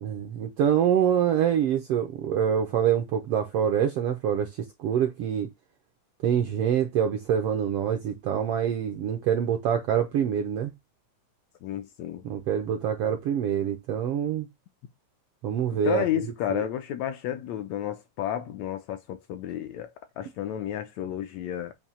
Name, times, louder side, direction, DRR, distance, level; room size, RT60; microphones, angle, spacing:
voice 1, 0.0-5.5 6.2-10.7 12.2-14.5 15.4-16.0 16.5-16.6, right 9 dB, 75° right, 1.4 m, -25 dB
voice 2, 11.6-12.2 15.7-21.7, left 11 dB, 75° left, 1.7 m, -32 dB
7.3 x 2.8 x 5.4 m
omnidirectional pair, 3.5 m